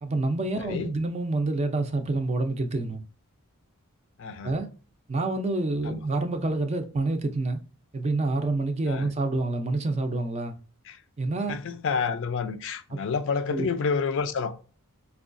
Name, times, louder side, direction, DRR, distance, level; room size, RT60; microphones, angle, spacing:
voice 1, 0.0-3.0 4.4-4.7 5.1-7.6 7.9-10.6 11.2-11.6 12.9-13.0 13.5-13.7, right 2 dB, 30° right, 0.4 m, -27 dB
voice 2, 0.6-0.9 4.2-4.5 5.8-6.0 8.9-9.1 10.9-11.0 11.5-14.5, left 5 dB, 60° left, 0.4 m, -29 dB
4.6 x 2.3 x 2.5 m
head